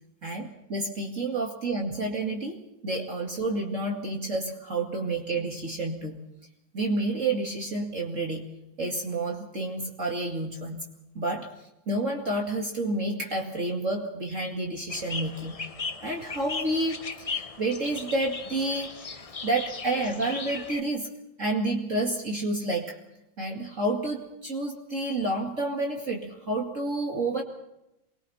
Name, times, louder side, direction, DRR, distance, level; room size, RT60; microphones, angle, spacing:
voice 1, 0.2-6.2 6.7-8.4 8.8-10.8 11.1-11.5 11.9-15.6 16.0-21.1 21.4-23.0 23.4-27.4, right 2 dB, 40° right, 0 dB, 2.6 m, -30 dB
sound 1, 14.9-20.8, left 4 dB, 45° left, 0.4 m, -37 dB
28.5 x 22.0 x 4.3 m, 0.87 s
omnidirectional pair, 2.1 m